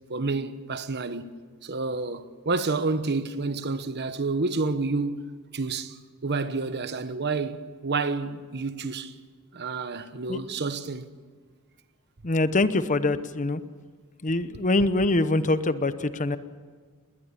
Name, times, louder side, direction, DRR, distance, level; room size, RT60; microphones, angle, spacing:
voice 1, 0.1-1.3 1.6-5.3 5.5-9.1 9.5-11.1, right 3 dB, 50° right, 1.0 m, -29 dB
voice 2, 12.2-13.6 14.2-16.4, left 2 dB, 35° left, 0.9 m, -24 dB
21.0 x 20.0 x 8.5 m
head